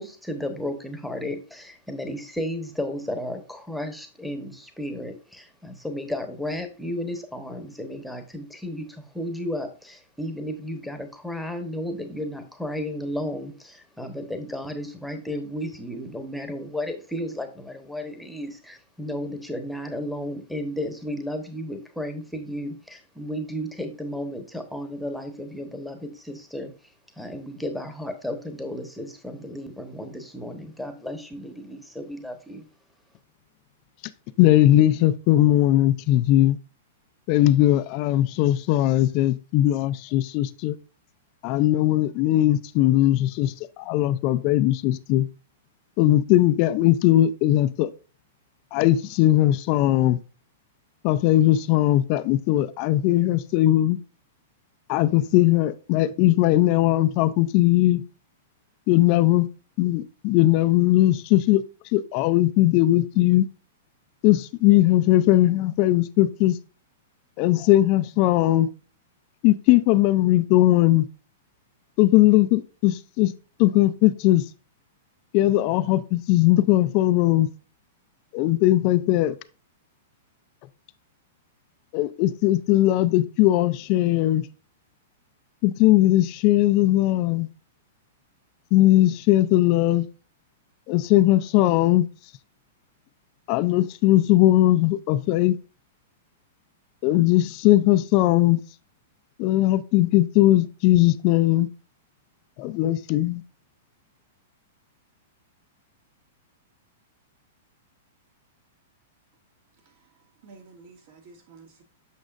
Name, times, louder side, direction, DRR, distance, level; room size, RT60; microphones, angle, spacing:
voice 1, 0.0-26.7 27.2-32.6, left 1 dB, ahead, 1.2 m, -33 dB
voice 2, 34.4-36.6 37.3-40.8 41.4-45.3 46.0-47.9 48.7-50.2 51.0-54.0 54.9-58.0 58.9-59.5 59.8-61.6 61.9-63.5 64.2-66.6 67.4-68.7 69.4-71.1 72.0-73.3 73.6-74.4 75.3-77.5 78.3-79.4 81.9-84.5 85.6-87.5 88.7-90.1 90.9-92.1 93.5-95.6 97.0-98.6 99.4-101.7 102.6-103.4, left 15 dB, 45° left, 0.4 m, -19 dB
voice 3, 109.8-111.8, right 4 dB, 60° right, 2.4 m, -51 dB
8.3 x 6.1 x 2.5 m
hypercardioid pair, 130°, 0 cm